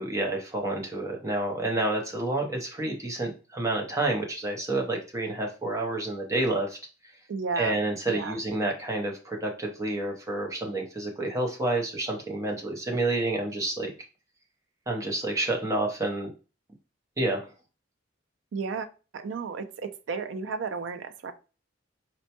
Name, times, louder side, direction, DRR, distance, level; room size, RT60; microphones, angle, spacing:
voice 1, 0.0-6.8 7.6-13.9 14.9-16.3 17.2-17.4, right 2 dB, 15° right, 1 dB, 0.7 m, -29 dB
voice 2, 7.3-7.8 8.1-8.4 18.5-18.9 19.1-21.3, right 4 dB, 70° right, 10 dB, 0.4 m, -33 dB
4.2 x 2.1 x 2.8 m, 0.34 s
head